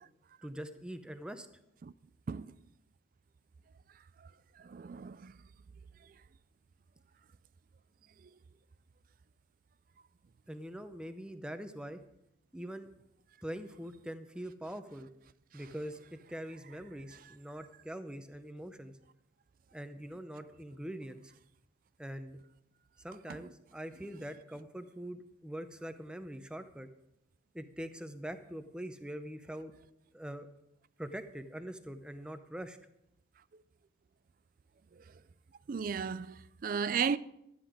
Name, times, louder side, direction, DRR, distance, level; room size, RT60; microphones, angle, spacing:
voice 1, 0.4-1.5 10.5-12.0 12.5-12.9 13.4-15.1 15.5-18.9 19.7-21.2 22.0-22.4 23.0-26.9 27.5-29.7 30.1-30.5 31.0-32.8, equal, 5° right, 0.6 m, -43 dB
voice 2, 4.6-5.3 8.2-8.3 17.3-17.4 23.3-23.5 34.9-35.0 35.7-37.2, right 6 dB, 45° right, 0.3 m, -35 dB
12.0 x 9.7 x 4.9 m
head